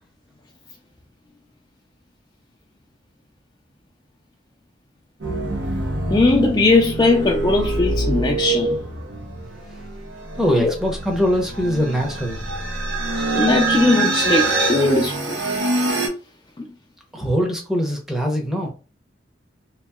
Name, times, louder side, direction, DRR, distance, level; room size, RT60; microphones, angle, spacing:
sound 1, 5.2-16.1, right 2 dB, 80° right, 0.8 m, -25 dB
voice 1, 6.1-8.8 10.6-10.7 13.3-15.4 16.6-16.7, left 3 dB, 25° left, 0.3 m, -19 dB
voice 2, 10.3-12.5 17.1-18.7, equal, 5° right, 0.7 m, -22 dB
2.9 x 2.8 x 2.2 m
head